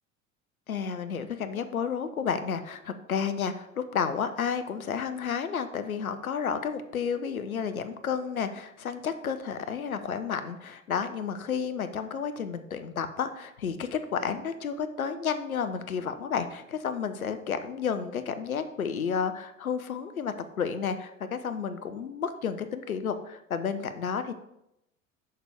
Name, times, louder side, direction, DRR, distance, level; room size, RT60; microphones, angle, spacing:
voice 1, 0.7-24.3, left 6 dB, 85° left, 10 dB, 0.6 m, -31 dB
6.6 x 5.9 x 3.4 m, 0.83 s
figure-of-eight pair, 70°, 41 cm